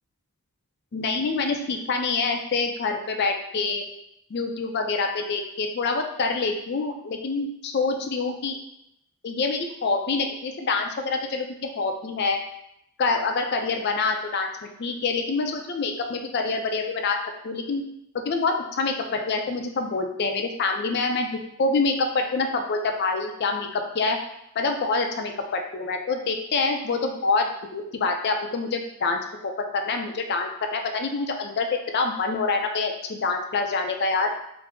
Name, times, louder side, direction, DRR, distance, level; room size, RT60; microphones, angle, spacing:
voice 1, 0.9-3.8 4.3-8.6 9.2-12.4 13.0-14.5 14.8-17.2 17.4-17.8 18.1-21.3 21.6-24.2 24.6-29.5 29.9-31.7 31.9-34.3, left 3 dB, 45° left, 4 dB, 0.4 m, -26 dB
3.4 x 2.0 x 3.6 m, 0.80 s
head